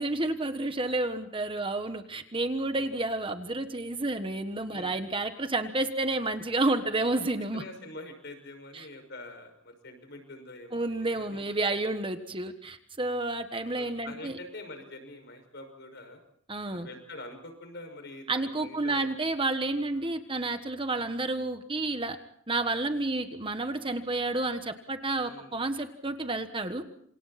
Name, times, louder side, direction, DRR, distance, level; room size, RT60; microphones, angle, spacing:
voice 1, 0.0-7.6 8.7-8.9 10.7-14.4 16.5-16.9 18.3-22.2 22.5-26.8, right 2 dB, 25° right, 8 dB, 1.4 m, -30 dB
voice 2, 4.7-5.0 7.1-7.3 7.5-11.5 13.8-16.2 16.7-19.1 19.9-20.2 25.2-25.6, left 2 dB, 55° left, 7 dB, 5.9 m, -45 dB
28.0 x 27.0 x 4.3 m, 0.64 s
head